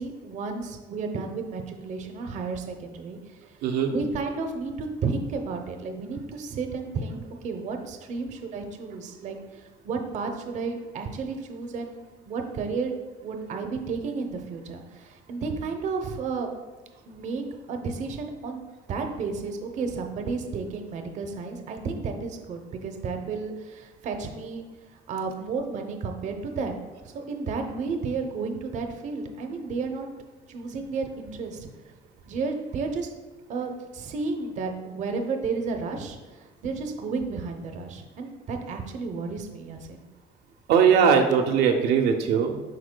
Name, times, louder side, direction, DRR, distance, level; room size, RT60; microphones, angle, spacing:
voice 1, 0.0-3.2 3.9-12.9 13.2-16.5 17.1-18.6 18.9-24.6 25.1-26.7 27.0-30.1 30.5-31.7 32.3-33.1 33.5-40.0, right 4 dB, 50° right, 4 dB, 0.7 m, -32 dB
voice 2, 3.6-3.9 40.7-42.6, right 7 dB, 85° right, 3 dB, 0.7 m, -20 dB
11.5 x 4.1 x 2.2 m, 1.3 s
cardioid pair, 155°, 16 cm